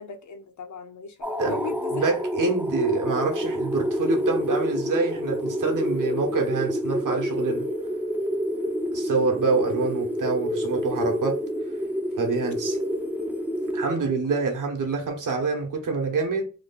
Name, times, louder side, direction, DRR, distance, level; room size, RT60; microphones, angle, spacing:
voice 1, 0.0-2.1 8.5-8.9 13.7-14.1, left 6 dB, 65° left, 0.7 m, -39 dB
sound 1, 1.2-14.5, equal, 5° right, 0.3 m, -28 dB
voice 2, 1.9-7.7 8.9-11.4 12.2-12.8 13.7-16.4, right 4 dB, 80° right, 1.0 m, -26 dB
3.0 x 2.3 x 3.9 m
wide cardioid pair, 145°, 32 cm